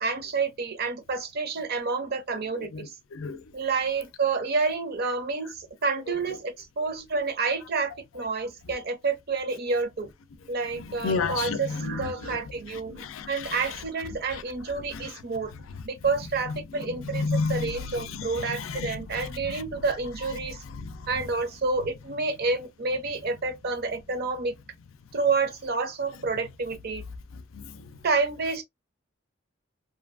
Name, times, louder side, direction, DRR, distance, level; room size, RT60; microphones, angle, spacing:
voice 1, 0.0-2.9 3.5-10.1 10.5-15.5 15.8-20.6 21.1-24.5 25.1-27.0 28.0-28.6, right 4 dB, 50° right, 0.6 m, -29 dB
voice 2, 2.6-3.4 6.1-6.2 10.7-12.1 12.9-13.8 14.3-14.4 14.9-15.1 16.9-19.6 20.7-21.1 27.5-27.9, left 4 dB, 85° left, 0.5 m, -32 dB
2.7 x 2.4 x 2.4 m
head